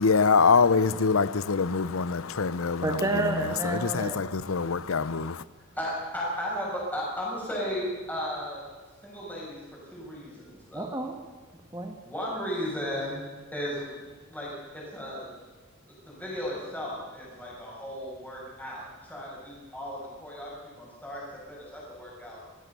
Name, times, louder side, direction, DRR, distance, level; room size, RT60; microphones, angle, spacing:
voice 1, 0.0-3.0 3.6-5.4, left 5 dB, 85° left, 0.7 m, -24 dB
voice 2, 2.8-4.2 10.7-11.2 11.7-12.0, right 2 dB, 15° right, 1.5 m, -29 dB
voice 3, 5.8-8.6 9.0-10.8 12.0-13.2 13.5-15.3 16.1-22.4, equal, 10° left, 6.8 m, -35 dB
25.0 x 16.0 x 6.9 m
head